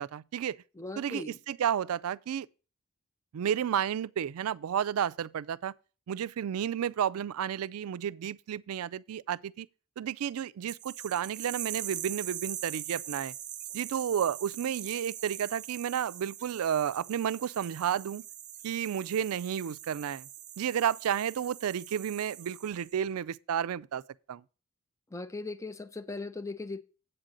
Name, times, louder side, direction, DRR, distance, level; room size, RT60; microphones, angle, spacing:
voice 1, 0.0-0.6 1.0-2.5 3.3-5.7 6.1-9.7 10.0-13.3 13.7-18.2 18.6-20.3 20.6-24.0 24.3-24.4, right 9 dB, 80° right, 0.4 m, -32 dB
voice 2, 0.8-1.4 25.1-26.8, left 3 dB, 15° left, 0.4 m, -38 dB
sound 1, 10.7-23.0, right 11 dB, 35° right, 0.6 m, -42 dB
8.9 x 8.1 x 3.8 m
head